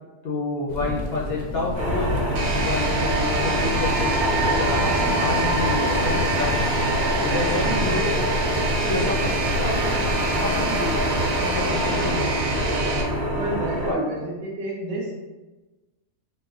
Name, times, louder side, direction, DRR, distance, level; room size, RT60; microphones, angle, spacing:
voice 1, 0.2-2.2 2.5-4.1 4.4-6.6 7.2-8.3 8.9-10.0 10.4-11.0 11.5-12.3 13.8-14.1, left 2 dB, 65° left, -4 dB, 0.6 m, -29 dB
sound 1, 0.7-13.2, left 2 dB, 90° left, 1.2 m, -34 dB
sound 2, 1.7-13.9, right 1 dB, 15° right, 0.6 m, -24 dB
sound 3, 2.4-13.0, right 2 dB, 80° right, 1.1 m, -29 dB
voice 2, 7.3-8.0 13.3-15.1, right 2 dB, 60° right, -2 dB, 1.0 m, -31 dB
5.2 x 2.0 x 2.5 m, 1.1 s
omnidirectional pair, 1.7 m